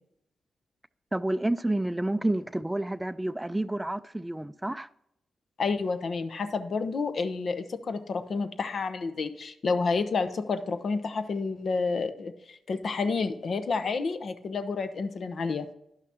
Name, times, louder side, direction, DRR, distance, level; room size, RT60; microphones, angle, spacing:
voice 1, 1.1-4.9, right 1 dB, 15° right, 0.4 m, -29 dB
voice 2, 5.6-15.7, left 4 dB, 65° left, 0.8 m, -30 dB
10.5 x 5.9 x 4.4 m
supercardioid pair, 40°, 0 cm